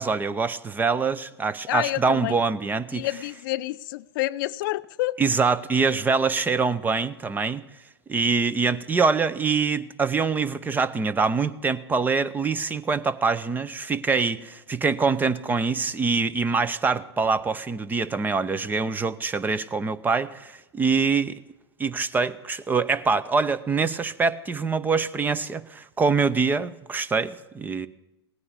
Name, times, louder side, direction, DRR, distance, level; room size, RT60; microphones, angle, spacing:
voice 1, 0.0-3.1 5.2-7.6 8.1-21.3 21.8-27.9, right 4 dB, 15° right, 17 dB, 0.6 m, -24 dB
voice 2, 1.7-2.3 2.9-5.2, left 17 dB, 50° left, 17 dB, 0.4 m, -28 dB
17.5 x 9.7 x 8.2 m, 0.99 s
hypercardioid pair, 105°, 14 cm